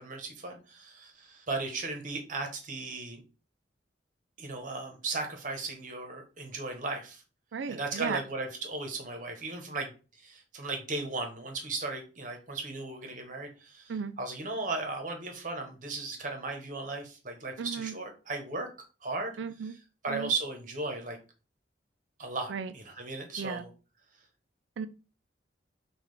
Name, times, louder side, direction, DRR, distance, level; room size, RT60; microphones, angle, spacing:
voice 1, 0.0-3.2 4.4-7.2 7.7-9.9 10.2-18.7 19.0-19.4 19.6-19.8 20.0-21.2 22.2-23.7, right 3 dB, 45° right, 0.9 m, -36 dB
voice 2, 7.5-8.2 13.9-14.1 17.6-17.9 19.4-19.7 20.1-20.3 22.5-22.7 23.4-23.6 24.8-24.9, right 6 dB, 75° right, 0.4 m, -35 dB
5.7 x 2.4 x 3.2 m
head